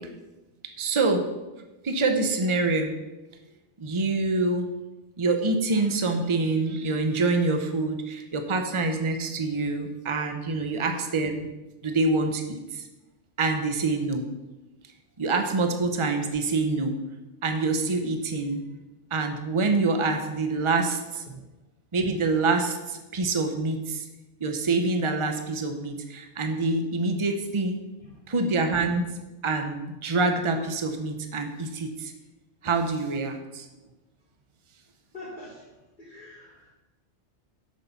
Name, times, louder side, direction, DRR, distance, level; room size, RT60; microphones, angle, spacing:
voice 1, 0.8-1.2 1.8-2.9 3.8-4.7 5.2-11.5 11.8-12.8 13.4-14.3 15.2-17.0 17.4-18.6 19.1-21.2 21.9-24.1 24.4-27.8 28.3-29.0 29.4-32.1 32.6-33.7, right 3 dB, 30° right, 5 dB, 0.9 m, -26 dB
voice 2, 35.1-35.7 36.0-36.7, left 1 dB, 45° left, -5 dB, 1.7 m, -44 dB
8.1 x 6.9 x 5.8 m, 1.1 s
omnidirectional pair, 1.2 m